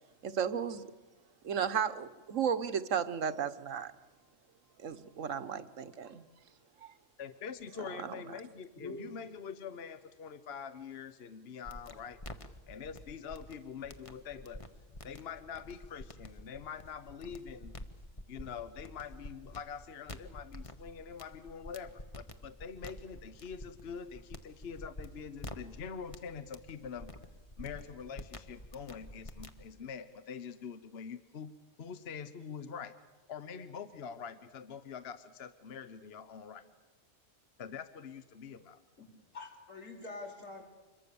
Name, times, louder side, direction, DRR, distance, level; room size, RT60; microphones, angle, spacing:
voice 1, 0.2-0.8 1.4-3.9 4.8-6.3 6.8-6.9 8.0-8.2, right 7 dB, 75° right, 1.4 m, -34 dB
voice 2, 7.2-12.2 12.7-14.6 15.0-17.8 18.3-27.1 27.6-32.9 33.3-36.6 37.6-38.8, left 6 dB, 55° left, 1.1 m, -45 dB
voice 3, 8.7-9.1 39.0-39.1 39.3-40.6, left 3 dB, 80° left, 4.6 m, -44 dB
sound 1, 11.7-29.7, left 1 dB, 25° left, 1.2 m, -49 dB
26.5 x 22.5 x 7.0 m
omnidirectional pair, 1.3 m